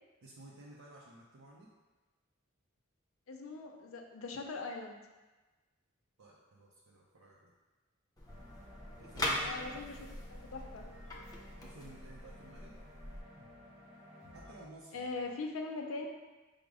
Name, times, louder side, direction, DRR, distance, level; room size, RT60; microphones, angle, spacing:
voice 1, 0.2-1.7 6.2-7.5 9.0-10.1 11.6-12.7 14.3-15.3, right 2 dB, 85° right, -4 dB, 0.5 m, -54 dB
voice 2, 3.3-5.0 9.4-9.9 10.5-10.9 14.9-16.1, left 3 dB, 85° left, 3 dB, 0.5 m, -40 dB
sound 1, 8.2-13.2, left 1 dB, 20° left, 0.6 m, -41 dB
sound 2, 8.3-14.6, left 1 dB, 5° right, 1.0 m, -55 dB
4.9 x 2.0 x 4.7 m, 1.2 s
head